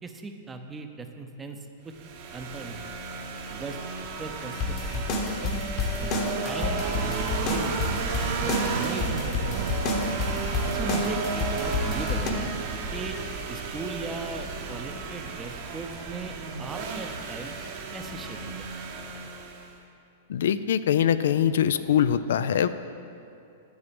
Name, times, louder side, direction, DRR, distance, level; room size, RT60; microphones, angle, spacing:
voice 1, 0.0-1.6 2.3-2.8 3.5-3.8 4.2-5.0 5.4-5.6 6.0-7.8 8.4-8.5 8.8-9.8 10.6-12.5 12.9-13.2 13.5-16.3 16.6-17.6 17.9-18.7, right 3 dB, 15° right, 6 dB, 0.6 m, -38 dB
sound 1, 1.9-19.8, right 4 dB, 50° right, 1.0 m, -34 dB
sound 2, 4.5-12.3, left 3 dB, 40° left, 1.1 m, -30 dB
sound 3, 6.6-13.7, right 8 dB, 75° right, 0.4 m, -36 dB
voice 2, 20.3-22.7, left 9 dB, 80° left, 13 dB, 0.3 m, -23 dB
8.7 x 7.0 x 5.2 m, 2.6 s
hypercardioid pair, 135°, 0 cm